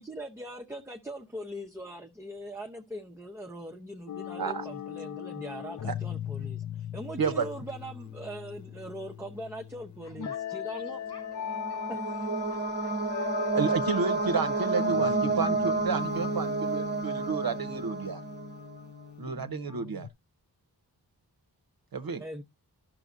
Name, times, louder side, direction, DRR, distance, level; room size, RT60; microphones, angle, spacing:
voice 1, 0.0-11.0 11.9-12.4 22.2-22.4, right 1 dB, 5° right, 0.7 m, -41 dB
sound 1, 4.1-20.1, left 8 dB, 50° left, 0.5 m, -38 dB
voice 2, 7.2-7.5 13.5-18.2 19.2-20.1 21.9-22.2, right 5 dB, 60° right, 0.8 m, -31 dB
voice 3, 10.0-12.0 12.5-13.7 14.3-15.1 15.4-15.7, left 3 dB, 75° left, 4.1 m, -55 dB
sound 2, 11.0-18.8, right 3 dB, 25° right, 1.0 m, -31 dB
12.5 x 6.0 x 2.5 m
wide cardioid pair, 65°, 39 cm